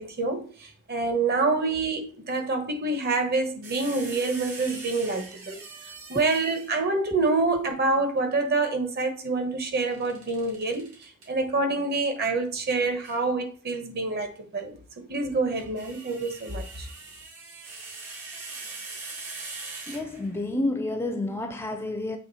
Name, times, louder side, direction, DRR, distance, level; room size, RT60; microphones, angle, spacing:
voice 1, 0.0-5.6 6.1-10.9 11.3-16.9, right 3 dB, 45° right, 1.1 m, -27 dB
sound 1, 3.6-6.9 9.8-11.3 13.0-13.2 15.3-20.5, right 3 dB, 75° right, 2.1 m, -42 dB
voice 2, 19.9-22.2, left 2 dB, 10° left, 0.4 m, -30 dB
7.5 x 3.1 x 4.1 m
head